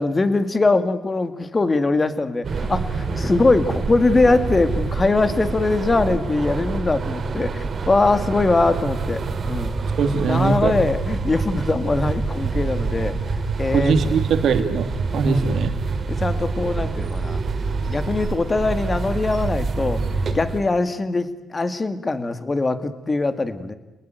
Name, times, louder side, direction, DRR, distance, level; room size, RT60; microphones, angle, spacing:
voice 1, 0.0-9.2 9.5-9.7 10.3-13.2 13.6-13.9 15.2-15.7 16.1-17.4 17.9-20.0 20.3-23.7, left 3 dB, 25° left, 10 dB, 2.3 m, -22 dB
sound 1, 2.4-20.6, right 4 dB, 45° right, 3.3 m, -26 dB
voice 2, 10.0-10.7 13.7-15.7, right 5 dB, 65° right, 7 dB, 2.7 m, -21 dB
29.5 x 20.0 x 9.3 m, 1.1 s
cardioid pair, 90°, 0 cm